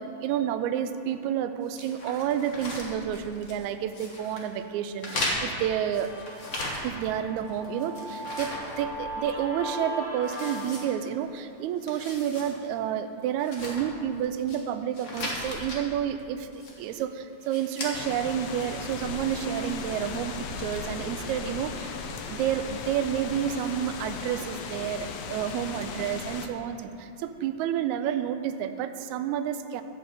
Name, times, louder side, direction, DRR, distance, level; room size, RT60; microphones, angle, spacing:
voice 1, 0.0-6.1 6.8-8.5 8.8-21.9 22.3-29.8, right 9 dB, 80° right, 9 dB, 1.8 m, -30 dB
sound 1, 1.7-3.6 3.9-4.5 5.0-7.1 7.5-9.4 9.7-9.8 10.2-11.4 11.7-12.5 12.9-13.0 13.4-14.6 14.9-15.8 16.5-17.0 17.4-17.9, left 1 dB, 45° left, 1.0 m, -37 dB
Guitar, 5.1-10.6, right 1 dB, ahead, 1.2 m, -39 dB
sound 2, 17.9-26.5, left 5 dB, 75° left, 1.6 m, -37 dB
12.0 x 5.5 x 7.8 m, 2.7 s
omnidirectional pair, 3.6 m